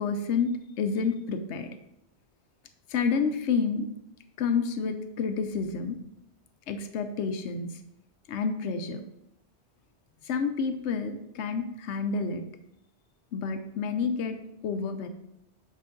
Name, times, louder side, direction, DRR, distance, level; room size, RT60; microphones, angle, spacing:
voice 1, 0.0-1.7 2.9-3.9 4.4-6.0 6.7-7.8 8.3-9.0 10.2-12.4 13.3-14.4 14.6-15.1, left 5 dB, 85° left, 8 dB, 1.0 m, -29 dB
8.3 x 5.2 x 3.8 m, 0.82 s
omnidirectional pair, 1.1 m